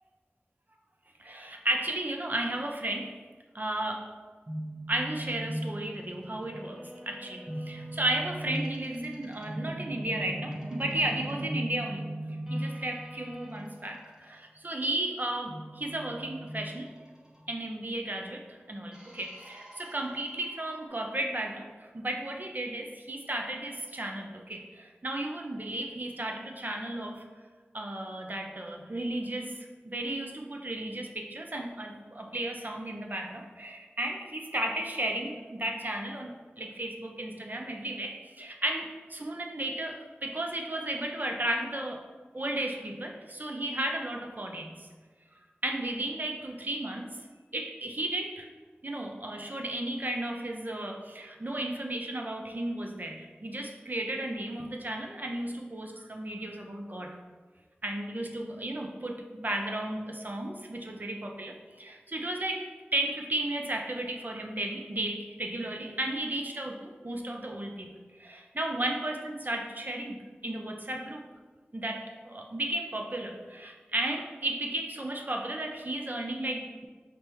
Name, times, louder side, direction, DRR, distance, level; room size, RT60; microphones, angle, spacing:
voice 1, 1.2-3.2 3.5-4.0 4.9-12.1 12.5-16.9 17.5-27.2 27.7-42.0 42.3-44.8 45.6-47.2 47.5-48.5 48.8-57.2 57.8-71.2 71.7-76.9, right 1 dB, 45° right, 2 dB, 0.5 m, -34 dB
sound 1, 4.5-13.5 15.5-17.4 18.9-20.9, right 1 dB, 20° right, 1.0 m, -39 dB
5.1 x 3.3 x 3.0 m, 1.4 s
wide cardioid pair, 45°, 4 cm